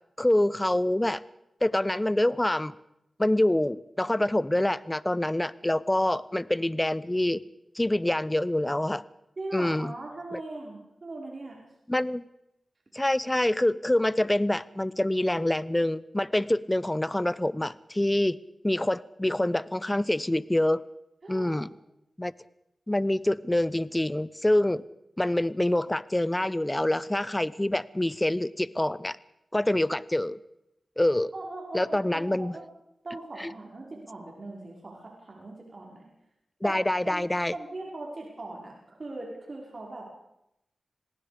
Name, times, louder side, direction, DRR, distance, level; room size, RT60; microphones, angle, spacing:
voice 1, 0.2-1.2 1.6-2.7 3.2-7.4 7.7-9.0 9.5-9.9 10.3-10.4 11.9-12.2 12.9-18.4 18.6-20.8 21.3-21.7 22.2-22.3 22.9-24.8 25.2-29.2 29.5-30.4 31.0-31.3 31.7-32.5 33.4-33.5 36.6-37.5, left 1 dB, 15° left, 18 dB, 0.9 m, -26 dB
voice 2, 9.4-11.6 21.2-21.6 31.3-32.6 33.0-36.0 36.6-36.8 37.0-37.2 37.5-40.1, right 2 dB, 55° right, -1 dB, 5.1 m, -40 dB
27.0 x 19.0 x 5.1 m, 0.83 s
cardioid pair, 45°, 0 cm